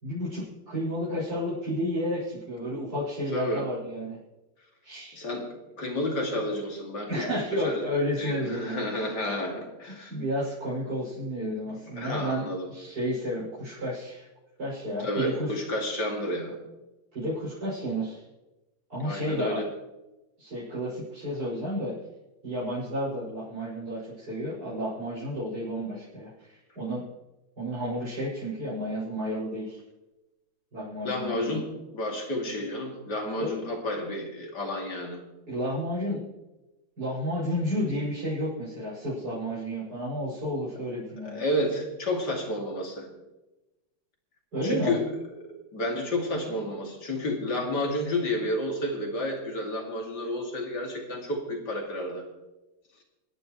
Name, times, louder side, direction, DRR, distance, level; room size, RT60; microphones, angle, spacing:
voice 1, 0.0-4.2 4.8-5.2 7.1-9.1 10.1-12.4 12.7-14.3 14.6-15.5 17.1-18.2 18.9-19.6 20.4-21.9 22.4-26.3 26.8-27.0 27.6-29.8 30.7-31.6 33.4-33.5 35.5-36.3 37.0-41.4 44.5-45.0, equal, 60° right, -10 dB, 6.9 m, -31 dB
voice 2, 3.3-3.7 5.1-5.5 5.8-7.9 8.2-10.2 11.7-12.7 15.0-16.6 19.0-19.7 31.0-31.7 31.9-35.2 41.2-43.1 44.6-45.1 45.4-52.3, left 1 dB, 60° left, 1 dB, 3.1 m, -31 dB
28.5 x 10.5 x 3.2 m, 1.0 s
omnidirectional pair, 2.0 m